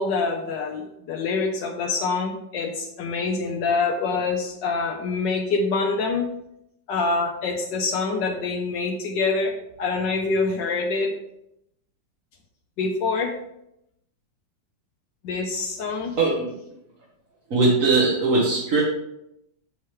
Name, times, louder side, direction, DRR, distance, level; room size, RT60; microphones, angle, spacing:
voice 1, 0.0-6.3 6.9-11.1 12.8-13.4 15.2-16.2, left 4 dB, 75° left, 1 dB, 1.4 m, -25 dB
voice 2, 16.2-16.5 17.5-18.8, right 3 dB, 45° right, -5 dB, 1.5 m, -20 dB
7.1 x 6.5 x 3.2 m, 0.81 s
omnidirectional pair, 2.0 m